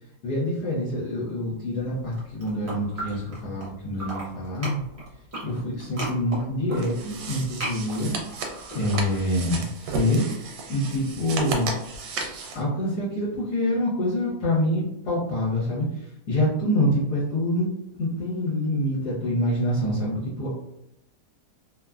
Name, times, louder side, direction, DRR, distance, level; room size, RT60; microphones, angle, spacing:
voice 1, 0.2-4.8 5.4-8.2 8.7-10.3 10.7-11.7 12.5-17.7 18.0-20.5, left 1 dB, 70° left, -8 dB, 1.3 m, -26 dB
sound 1, 2.0-3.7 3.9-9.6, right 1 dB, 45° right, 0.4 m, -37 dB
sound 2, 6.7-12.6, right 4 dB, 80° right, 1.2 m, -34 dB
3.0 x 2.1 x 2.3 m, 0.83 s
omnidirectional pair, 1.8 m